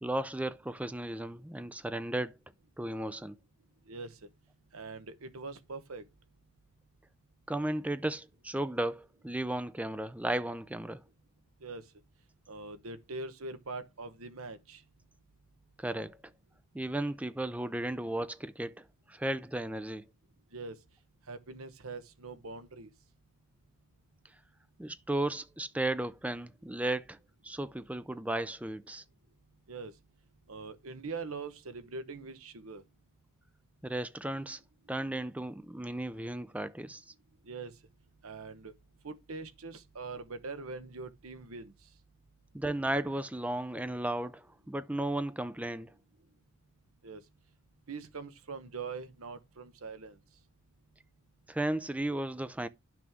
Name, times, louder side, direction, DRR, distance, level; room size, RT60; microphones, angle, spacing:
voice 1, 0.0-2.4 2.8-3.4 7.5-11.0 15.8-16.2 16.7-20.1 24.8-27.2 27.4-29.0 33.8-34.6 34.9-37.1 42.5-45.9 51.5-52.7, right 1 dB, 5° right, 0.4 m, -35 dB
voice 2, 3.9-4.2 4.7-6.0 11.6-11.8 12.5-14.8 20.5-20.8 21.3-22.9 29.7-29.9 30.5-32.8 37.4-37.7 38.2-38.7 39.0-41.7 47.0-47.2 47.9-50.2, right 4 dB, 75° right, 1.0 m, -42 dB
12.0 x 6.1 x 3.5 m
head